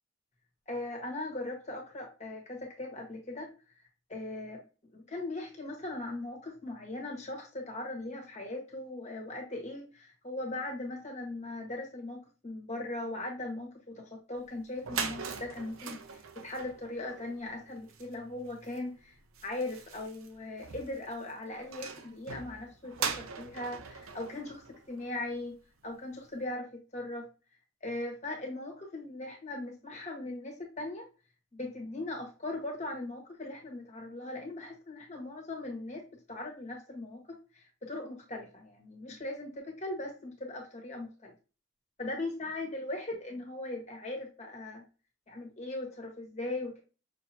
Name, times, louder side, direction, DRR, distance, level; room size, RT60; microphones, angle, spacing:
voice 1, 0.7-3.5 4.1-4.6 4.9-19.1 19.4-25.5 25.8-27.3 27.8-31.1 31.5-41.3 42.0-44.8 45.3-46.8, left 2 dB, 35° left, 1 dB, 1.5 m, -39 dB
sound 1, 14.5-14.6 14.7-25.5, right 6 dB, 85° right, 0.7 m, -41 dB
6.3 x 2.9 x 2.8 m, 0.33 s
head